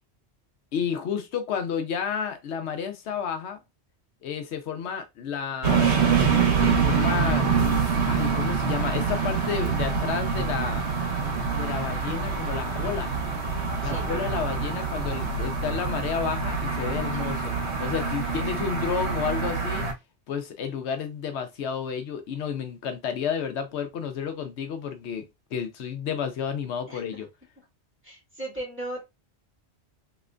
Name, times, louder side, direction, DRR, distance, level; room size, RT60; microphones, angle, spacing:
voice 1, 0.7-3.6 4.2-6.1 6.6-7.7 8.1-10.8 11.5-13.1 13.8-17.5 17.8-19.8 20.3-27.3, left 7 dB, 80° left, 0.9 m, -31 dB
sound 1, 5.6-19.9, right 5 dB, 80° right, 1.2 m, -25 dB
voice 2, 26.9-27.2 28.0-29.0, right 1 dB, 10° right, 1.9 m, -37 dB
3.2 x 2.9 x 2.4 m
omnidirectional pair, 1.1 m